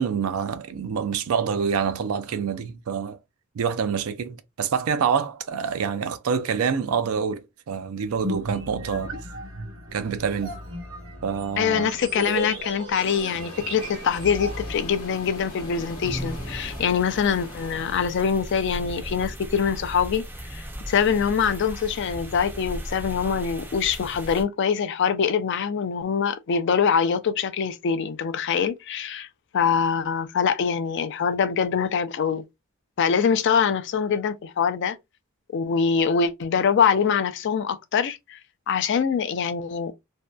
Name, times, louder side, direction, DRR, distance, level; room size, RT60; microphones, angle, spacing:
voice 1, 0.0-3.2 3.5-9.2 9.9-10.6 11.2-11.9, right 6 dB, 80° right, 0.4 m, -26 dB
sound 1, 8.0-14.7, right 1 dB, 60° right, 0.9 m, -35 dB
voice 2, 11.6-20.2 20.5-29.3 29.5-32.4 33.0-35.0 35.5-38.4 38.7-39.9, left 6 dB, 55° left, 0.4 m, -24 dB
sound 2, 13.0-18.1, left 2 dB, 75° left, 0.8 m, -42 dB
sound 3, 14.1-24.4, equal, 10° right, 0.4 m, -37 dB
2.6 x 2.1 x 2.2 m
head